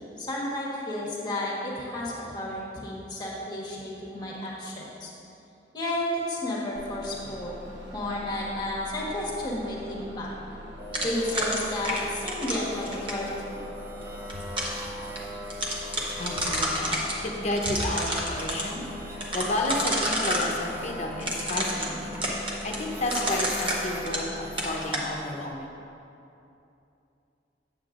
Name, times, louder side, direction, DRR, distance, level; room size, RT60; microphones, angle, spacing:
voice 1, 0.2-5.1 5.7-7.6 7.9-10.3 11.0-13.5, left 1 dB, 25° left, -4 dB, 1.4 m, -32 dB
Bus, 6.7-24.9, equal, 85° right, 0.8 m, -44 dB
sound 1, 10.8-25.5, left 1 dB, 10° right, 0.5 m, -41 dB
sound 2, 10.9-13.3 14.1-14.8 15.2-15.3 15.5-17.1 17.5-18.6 19.2-20.5 21.2-24.3 24.6-25.1, equal, 30° right, 1.0 m, -29 dB
voice 2, 16.2-18.8 19.3-22.2 22.6-25.7, left 1 dB, 40° left, 0 dB, 0.8 m, -31 dB
9.1 x 7.5 x 2.5 m, 2.8 s
head